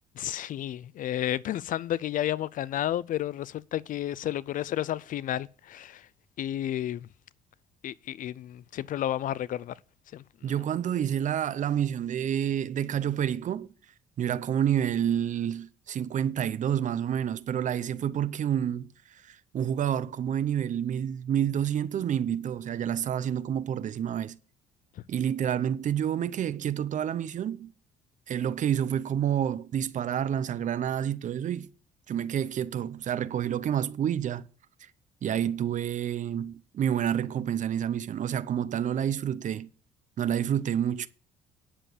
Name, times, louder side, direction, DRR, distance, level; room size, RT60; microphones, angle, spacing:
voice 1, 0.2-6.1 6.4-7.1 7.8-9.7 10.1-10.5, left 12 dB, 55° left, 0.4 m, -32 dB
voice 2, 10.4-13.7 14.2-24.4 25.1-27.7 28.3-31.7 32.1-34.5 35.2-39.7 40.2-41.1, right 9 dB, 45° right, 0.7 m, -29 dB
10.0 x 7.1 x 6.8 m
cardioid pair, 110°, 17 cm